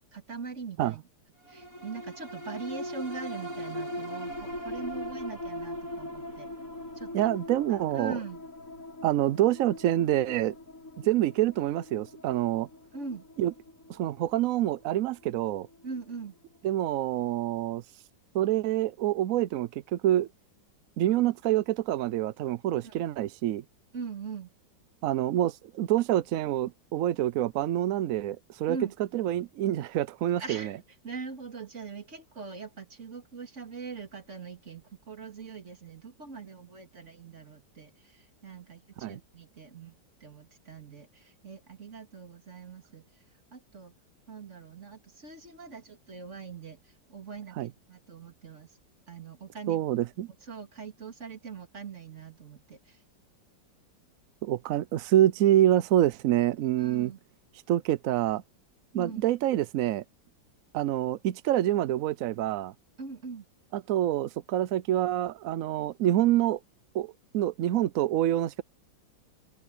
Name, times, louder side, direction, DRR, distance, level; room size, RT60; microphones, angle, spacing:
voice 1, 0.1-1.0 1.5-6.5 6.9-7.3 7.7-8.5 12.9-13.2 15.8-16.4 22.8-22.9 23.9-24.5 28.7-28.9 30.4-43.2 43.5-43.9 44.3-48.7 49.1-49.9 50.4-53.0 56.8-57.2 58.9-59.2 63.0-63.5, right 5 dB, 40° right, 2.6 m, -42 dB
sound 1, 1.4-16.1 16.5-16.6, left 1 dB, 45° left, 7.0 m, -41 dB
voice 2, 7.1-8.2 9.0-10.5 11.0-12.7 13.4-13.5 13.9-15.7 16.6-17.8 18.3-20.3 21.0-23.6 25.0-28.8 29.1-30.7 39.0-39.2 47.6-47.7 49.7-50.3 54.4-57.1 57.7-58.4 58.9-60.0 60.7-62.7 63.7-66.6 66.9-68.6, right 13 dB, 75° right, 0.7 m, -26 dB
omnidirectional pair, 2.0 m